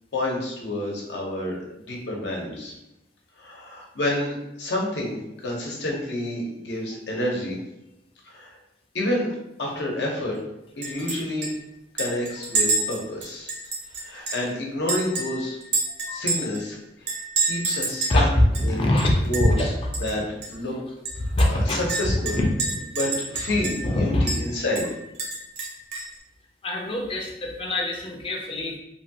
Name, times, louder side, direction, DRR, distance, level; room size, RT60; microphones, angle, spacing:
voice 1, 0.1-2.7 3.4-7.6 8.2-8.6 8.9-9.3 9.6-10.4 10.8-11.5 11.9-13.5 14.0-15.6 16.1-17.1 17.4-18.3 18.6-18.9 19.3-19.7 20.0-20.7 21.5-22.4 22.9-24.9, left 1 dB, 85° left, -2 dB, 0.8 m, -29 dB
Chink clink, 10.8-11.2 11.4-11.5 12.0-14.5 14.9-16.6 17.1-18.2 18.5-18.6 19.0-19.6 19.9-20.1 20.4-20.5 21.1-23.9 24.3-24.4 24.8-26.1, right 3 dB, 65° right, 0.7 m, -28 dB
voice 2, 15.9-16.3 18.1-19.1 19.5-20.1 21.3-22.9 23.5-24.3 26.6-28.8, left 1 dB, 30° left, 1 dB, 0.5 m, -24 dB
3.0 x 2.3 x 2.8 m, 0.89 s
head